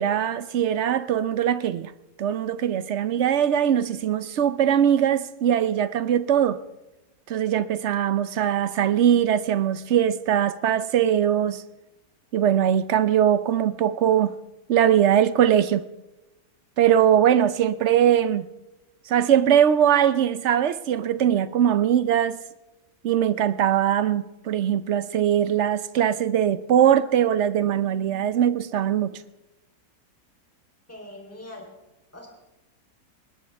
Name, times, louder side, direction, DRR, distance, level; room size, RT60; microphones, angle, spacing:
voice 1, 0.0-1.9 2.2-6.6 7.3-11.6 12.3-14.3 14.7-15.8 16.8-18.5 19.1-22.4 23.0-29.2, right 9 dB, 65° right, 0.7 m, -21 dB
voice 2, 30.9-31.6 32.1-32.3, left 1 dB, 10° left, 3.4 m, -41 dB
21.0 x 19.5 x 3.4 m
omnidirectional pair, 1.9 m